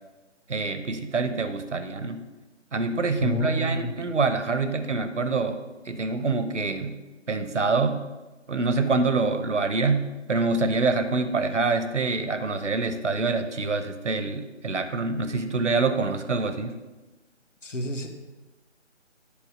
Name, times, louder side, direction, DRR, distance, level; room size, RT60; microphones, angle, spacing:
voice 1, 0.5-2.2 2.7-7.0 7.3-8.0 8.5-10.0 10.3-16.8, right 3 dB, 75° right, 9 dB, 1.0 m, -26 dB
voice 2, 3.2-3.9 17.6-18.1, left 1 dB, 80° left, 4 dB, 1.5 m, -29 dB
10.5 x 4.7 x 6.2 m, 1.1 s
figure-of-eight pair, 155°, 37 cm